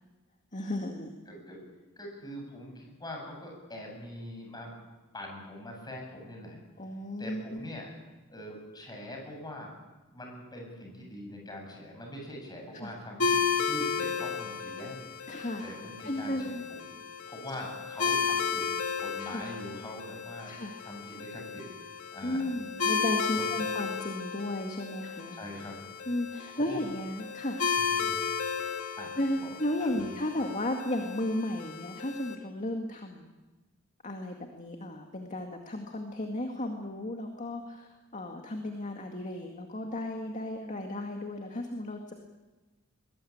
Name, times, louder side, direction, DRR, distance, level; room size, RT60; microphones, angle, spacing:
voice 1, 0.5-1.1 6.8-7.6 12.7-13.0 15.3-15.7 16.0-16.7 19.2-19.4 20.5-20.7 22.2-25.4 26.1-27.7 28.6-28.7 29.2-33.3 34.0-42.1, left 1 dB, 35° left, 3 dB, 2.1 m, -34 dB
voice 2, 1.3-1.6 2.0-4.7 5.1-6.6 7.2-7.9 8.3-9.7 10.1-15.4 15.6-17.0 17.3-18.7 19.0-21.6 22.1-22.5 23.3-23.7 25.3-25.8 26.5-26.8 27.8-28.2 29.0-29.1 29.4-29.5 29.8-30.1, left 1 dB, 20° left, 1 dB, 8.0 m, -43 dB
sound 1, 13.2-32.3, left 6 dB, 80° left, 2.6 m, -34 dB
22.5 x 21.5 x 8.8 m, 1.2 s
head